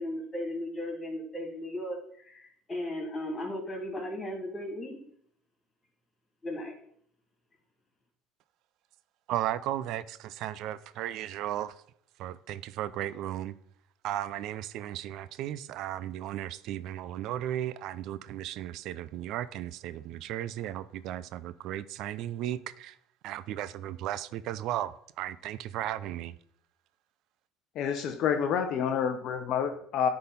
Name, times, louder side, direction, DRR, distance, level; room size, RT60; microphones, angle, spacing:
voice 1, 0.0-5.0 6.4-6.7, left 1 dB, 25° left, 1 dB, 2.9 m, -36 dB
voice 2, 9.3-11.7 12.2-13.5 14.0-22.9 23.2-26.3, right 12 dB, 65° right, 16 dB, 0.3 m, -35 dB
voice 3, 27.7-30.1, left 7 dB, 65° left, 6 dB, 0.7 m, -28 dB
9.7 x 3.8 x 4.2 m, 0.66 s
supercardioid pair, 95°, 0 cm